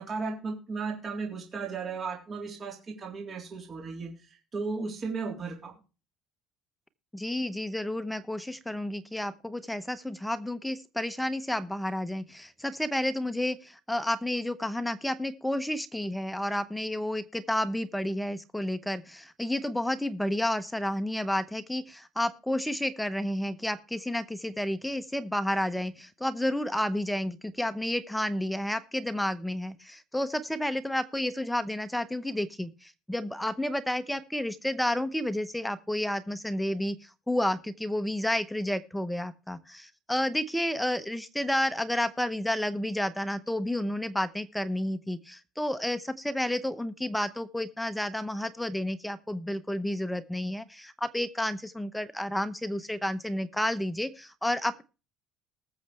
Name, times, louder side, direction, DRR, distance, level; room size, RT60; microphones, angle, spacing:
voice 1, 0.0-4.1 4.5-5.7, right 4 dB, 30° right, 0 dB, 3.6 m, -35 dB
voice 2, 7.1-54.8, left 1 dB, 5° left, 11 dB, 0.8 m, -31 dB
20.0 x 7.2 x 3.3 m, 0.33 s
cardioid pair, 135°, 0 cm